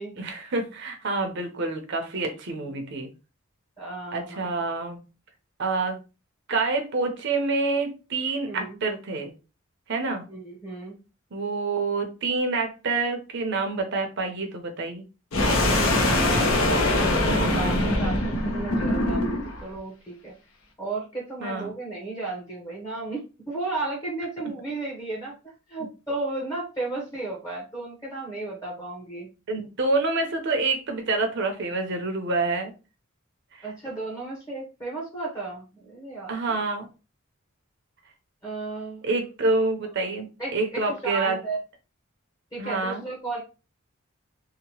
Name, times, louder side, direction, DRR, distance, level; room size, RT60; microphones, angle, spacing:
voice 1, 0.2-3.1 4.1-5.0 5.6-6.0 6.5-9.3 9.9-10.2 11.3-15.0 21.4-21.7 29.5-32.7 33.6-33.7 36.3-36.9 39.0-40.3 40.5-41.4 42.6-43.0, right 3 dB, 60° right, 4 dB, 0.7 m, -27 dB
voice 2, 3.8-4.5 8.5-8.8 10.3-11.0 15.6-20.3 20.8-29.3 33.6-36.6 38.4-39.1 40.4-41.6 42.5-43.4, right 3 dB, 15° left, -2 dB, 0.8 m, -34 dB
sound 1, 15.3-19.6, left 1 dB, 80° left, 0.8 m, -23 dB
2.8 x 2.1 x 2.9 m, 0.31 s
head